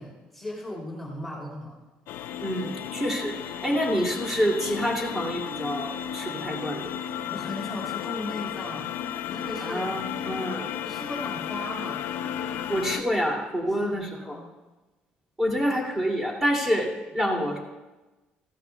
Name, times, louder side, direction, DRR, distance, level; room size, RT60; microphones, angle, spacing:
voice 1, 0.0-1.8 7.2-8.9 9.3-9.9 10.7-12.0 13.6-14.5, left 1 dB, 5° left, -4 dB, 3.1 m, -37 dB
sound 1, 2.1-13.0, left 9 dB, 75° left, 0.6 m, -34 dB
voice 2, 2.4-7.0 9.6-10.7 12.7-14.4 15.4-17.6, equal, 15° right, -1 dB, 2.8 m, -27 dB
16.0 x 12.5 x 2.4 m, 1.1 s
cardioid pair, 120°, 3 cm